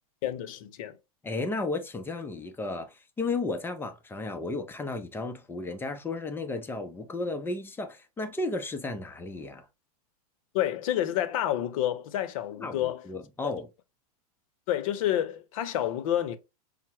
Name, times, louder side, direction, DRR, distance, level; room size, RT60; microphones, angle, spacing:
voice 1, 0.2-1.0 10.5-13.0 14.7-16.4, left 12 dB, 60° left, 0.7 m, -29 dB
voice 2, 1.2-9.6 12.6-13.7, left 3 dB, 10° left, 0.5 m, -34 dB
5.5 x 2.1 x 3.0 m
hypercardioid pair, 115°, 20 cm